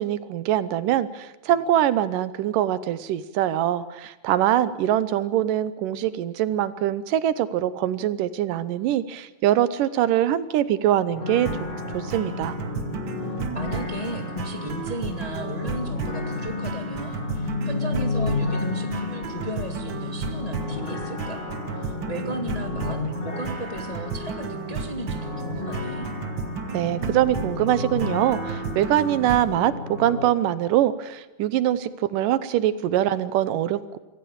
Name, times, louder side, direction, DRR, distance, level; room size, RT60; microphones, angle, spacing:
voice 1, 0.0-11.5 11.9-12.6 26.7-34.0, right 12 dB, 85° right, 15 dB, 2.5 m, -23 dB
sound 1, 11.1-30.3, left 4 dB, 40° left, 0.7 m, -32 dB
sound 2, 11.5-29.6, right 6 dB, 60° right, 1.2 m, -34 dB
voice 2, 13.2-21.4 21.7-23.0 23.2-26.1, equal, 15° left, 3 dB, 1.3 m, -35 dB
24.5 x 15.0 x 8.9 m, 1.1 s
omnidirectional pair, 3.7 m